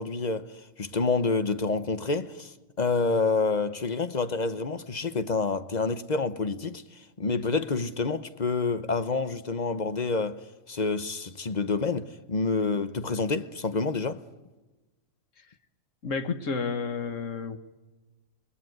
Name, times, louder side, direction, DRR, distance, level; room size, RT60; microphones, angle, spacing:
voice 1, 0.0-14.2, left 4 dB, 35° left, 1.0 m, -28 dB
voice 2, 16.0-17.6, left 5 dB, 70° left, 1.9 m, -31 dB
29.0 x 21.0 x 9.3 m
omnidirectional pair, 1.4 m